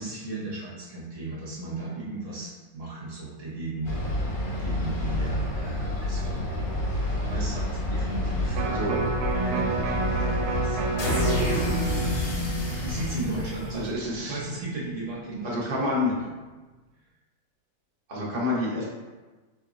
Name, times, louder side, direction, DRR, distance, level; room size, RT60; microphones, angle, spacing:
voice 1, 0.0-9.0 9.3-11.8 12.8-15.8, right 2 dB, 55° right, -5 dB, 1.1 m, -36 dB
sound 1, 3.8-14.1, left 1 dB, 60° left, 1.4 m, -28 dB
Electric guitar, 8.5-14.8 15.2-15.3, right 3 dB, 80° right, 1.1 m, -31 dB
voice 2, 8.6-9.0 13.7-14.4 15.4-16.2 18.1-18.8, left 2 dB, 35° right, -5 dB, 0.8 m, -28 dB
3.5 x 3.1 x 3.9 m, 1.3 s
omnidirectional pair, 1.7 m